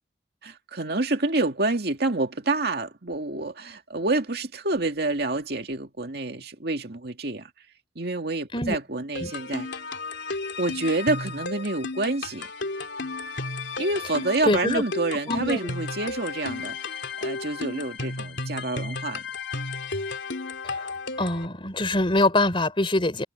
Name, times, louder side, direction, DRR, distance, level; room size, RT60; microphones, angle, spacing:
voice 1, 0.4-7.5 8.0-9.7 10.6-12.5 13.8-16.9 17.2-19.2, right 2 dB, 60° right, 2.3 m, -28 dB
sound 1, 9.2-21.5, left 3 dB, 85° left, 3.1 m, -33 dB
voice 2, 14.4-14.8 15.3-15.6 20.6-20.9 21.2-23.2, left 2 dB, 30° left, 3.9 m, -24 dB
head